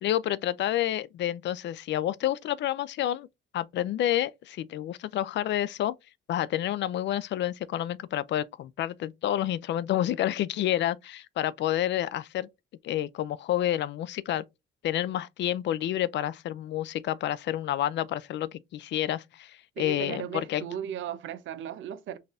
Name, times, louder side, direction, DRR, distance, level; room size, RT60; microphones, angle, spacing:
voice 1, 0.0-3.3 3.5-5.9 6.3-12.5 12.8-14.5 14.8-20.6, left 12 dB, 65° left, 0.4 m, -29 dB
voice 2, 19.8-22.2, right 9 dB, 75° right, 0.6 m, -36 dB
4.0 x 2.6 x 3.6 m
cardioid pair, 90°, 20 cm